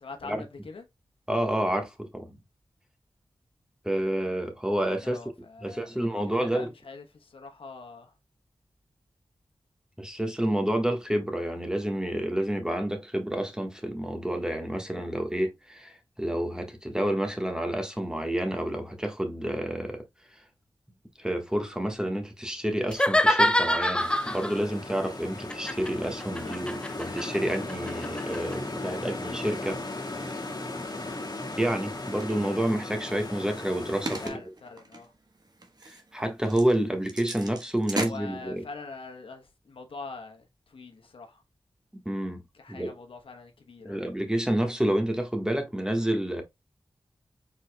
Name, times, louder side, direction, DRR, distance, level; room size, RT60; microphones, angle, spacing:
voice 1, 0.0-0.8 5.0-8.1 26.4-26.6 34.2-35.1 38.0-41.4 42.5-44.1, left 3 dB, 80° left, 1.0 m, -44 dB
voice 2, 1.3-2.4 3.8-5.2 5.6-6.7 10.0-20.0 21.2-29.8 30.1-30.3 31.6-34.4 35.8-38.6 41.9-42.4 42.7-42.9 43.8-46.4, right 1 dB, 10° right, 1.3 m, -29 dB
sound 1, 22.9-24.6 25.5-28.6, left 1 dB, 10° left, 0.6 m, -25 dB
sound 2, 24.0-34.3, left 2 dB, 50° left, 1.7 m, -37 dB
sound 3, 31.9-32.4 33.1-38.1, right 2 dB, 50° right, 1.2 m, -38 dB
4.9 x 4.1 x 2.2 m
cardioid pair, 45°, 9 cm